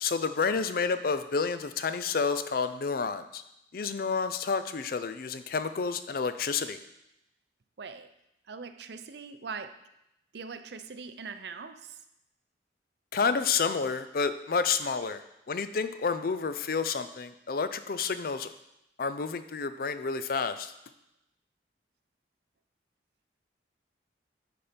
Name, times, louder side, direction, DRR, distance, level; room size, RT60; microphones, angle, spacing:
voice 1, 0.0-3.4 3.7-6.8 13.1-15.2 15.5-18.5 19.0-20.7, left 5 dB, 50° left, 11 dB, 0.5 m, -30 dB
voice 2, 7.8-8.1 8.5-9.7 10.3-12.0, right 5 dB, 65° right, 10 dB, 0.5 m, -41 dB
10.0 x 4.3 x 5.1 m, 0.85 s
head